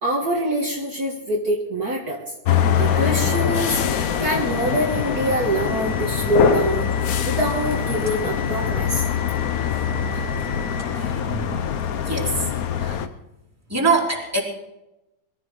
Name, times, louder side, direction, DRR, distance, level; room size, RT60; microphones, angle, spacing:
voice 1, 0.0-2.2 2.8-6.9 7.2-9.0 10.1-10.3, right 1 dB, 50° right, -2 dB, 2.1 m, -25 dB
sound 1, 2.5-13.1, left 8 dB, 60° left, 1.1 m, -23 dB
sound 2, 2.6-11.1, left 6 dB, 10° left, 3.8 m, -37 dB
voice 2, 11.0-11.4 12.1-12.3 12.8-13.0 13.7-14.4, right 3 dB, 5° right, -2 dB, 3.1 m, -23 dB
22.5 x 13.5 x 3.8 m, 0.95 s
omnidirectional pair, 2.2 m